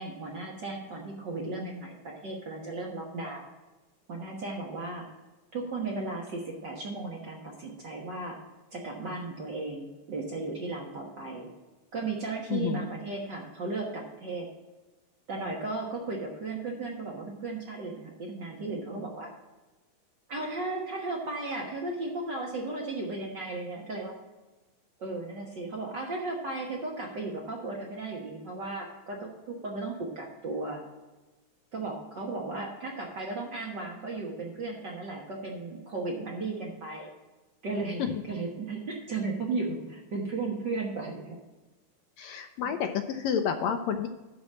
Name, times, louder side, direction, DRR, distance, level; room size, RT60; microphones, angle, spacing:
voice 1, 0.0-3.5 4.1-5.1 5.5-8.4 8.7-11.5 11.9-14.5 15.3-19.3 20.3-24.1 25.0-30.8 31.7-37.1 37.6-41.4, right 3 dB, 50° right, -1 dB, 1.5 m, -35 dB
voice 2, 12.5-12.8 38.0-38.2 42.2-44.1, left 8 dB, 75° left, 7 dB, 1.8 m, -30 dB
11.5 x 4.1 x 7.2 m, 1.1 s
omnidirectional pair, 3.5 m